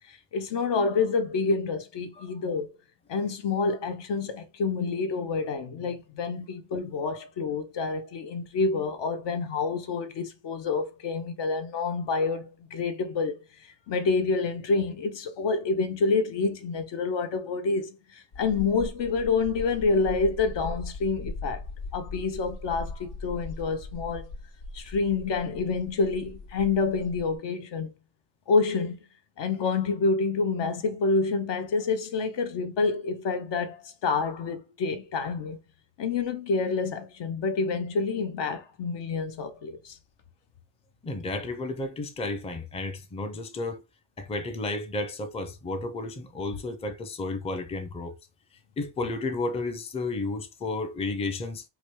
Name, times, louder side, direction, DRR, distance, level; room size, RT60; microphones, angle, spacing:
voice 1, 0.1-2.7 3.1-21.6 21.9-24.3 24.7-27.9 28.5-29.0 29.4-35.6 36.0-40.0, left 4 dB, 60° left, 0.7 m, -28 dB
sound 1, 18.3-27.4, left 3 dB, 80° left, 1.3 m, -40 dB
voice 2, 41.0-43.8 44.2-48.2 48.8-51.6, left 2 dB, 15° left, 0.5 m, -32 dB
2.9 x 2.3 x 3.0 m
supercardioid pair, 60°, 50 cm